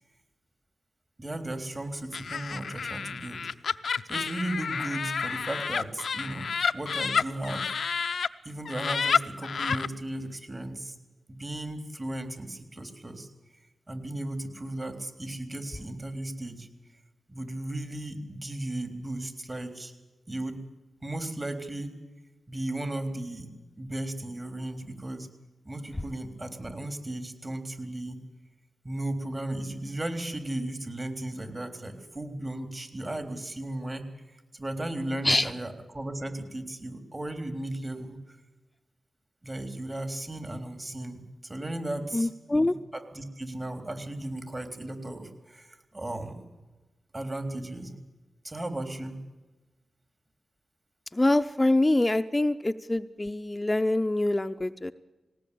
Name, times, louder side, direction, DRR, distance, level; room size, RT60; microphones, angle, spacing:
voice 1, 1.2-3.4 4.1-6.5 6.7-7.7 8.5-11.0 11.3-13.3 13.9-16.7 17.3-19.9 20.3-20.6 21.0-22.0 22.5-23.5 23.8-25.3 25.7-28.2 28.8-34.0 34.5-38.2 39.4-46.4 47.1-48.0 48.4-49.2, right 1 dB, 30° right, 7 dB, 3.8 m, -35 dB
Laughter, 2.1-8.3 8.6-9.9, left 6 dB, 75° left, 0.7 m, -29 dB
voice 2, 42.1-42.7 51.1-54.9, left 2 dB, 25° left, 9 dB, 0.7 m, -25 dB
20.0 x 18.0 x 8.6 m, 1.2 s
cardioid pair, 40°, 0 cm